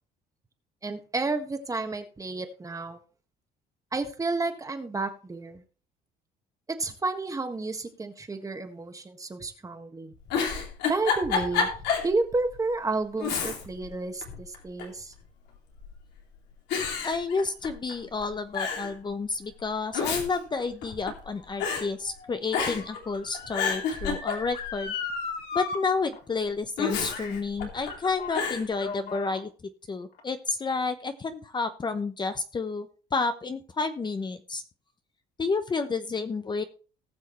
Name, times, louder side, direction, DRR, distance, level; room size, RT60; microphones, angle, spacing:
voice 1, 0.8-3.0 3.9-5.6 6.7-10.1 10.9-11.7 12.0-15.1, right 3 dB, 20° right, 6 dB, 1.6 m, -31 dB
Giggle, 10.1-12.1 12.5-12.6 13.2-13.9 14.2-15.0 15.8-16.2 16.7-17.9 18.2-18.3 18.5-18.9 19.7-21.3 21.6-21.9 22.5-23.0 23.3-24.7 26.8-27.9 28.3-28.7, left 6 dB, 85° left, 2.9 m, -29 dB
voice 2, 17.0-24.9 25.5-29.5 29.9-34.6 35.4-36.6, left 4 dB, 25° left, 8 dB, 0.9 m, -30 dB
Motor vehicle (road) / Siren, 20.7-25.8 26.1-26.2 27.1-27.4 27.7-29.4 30.1-30.2, left 5 dB, 70° left, 2.9 m, -38 dB
19.0 x 6.3 x 3.2 m, 0.37 s
cardioid pair, 110°, 17 cm